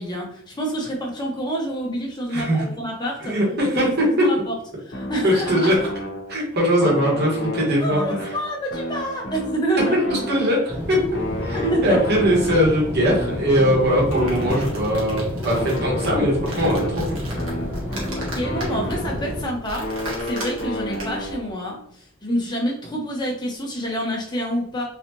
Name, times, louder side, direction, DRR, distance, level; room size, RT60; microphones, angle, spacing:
voice 1, 0.0-3.4 3.7-4.0 4.2-4.5 4.8-5.7 7.8-10.1 11.5-12.0 18.1-24.8, right 1 dB, 20° left, -2 dB, 0.9 m, -27 dB
voice 2, 2.3-2.6 3.2-4.3 5.2-5.7 6.3-8.4 10.3-11.0 11.4-17.2, equal, 55° right, -4 dB, 1.4 m, -20 dB
sound 1, 4.9-6.5 6.8-10.8 11.1-15.0 15.5-19.4 19.8-21.6, left 1 dB, 60° left, 0.9 m, -31 dB
sound 2, 10.7-19.4, left 1 dB, 10° right, 0.9 m, -30 dB
sound 3, 13.9-21.4, right 1 dB, 85° right, 1.4 m, -36 dB
4.1 x 2.4 x 2.9 m, 0.69 s
head